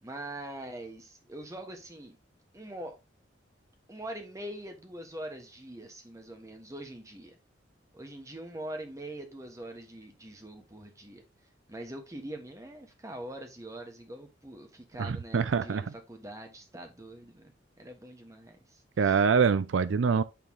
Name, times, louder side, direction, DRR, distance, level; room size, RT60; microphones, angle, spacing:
voice 1, 0.0-2.2 2.5-3.0 3.9-7.3 7.9-11.2 11.7-19.2, right 1 dB, 15° right, 1.2 m, -43 dB
voice 2, 15.0-15.8 19.0-20.2, right 5 dB, 85° right, 0.4 m, -25 dB
8.5 x 3.4 x 3.6 m
head